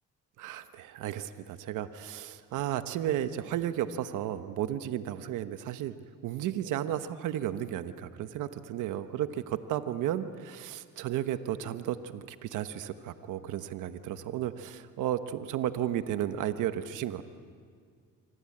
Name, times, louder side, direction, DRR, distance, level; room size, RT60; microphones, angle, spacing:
voice 1, 0.4-5.9 6.2-17.2, right 11 dB, 90° right, 11 dB, 1.1 m, -33 dB
26.0 x 26.0 x 8.7 m, 2.1 s
cardioid pair, 90°, 30 cm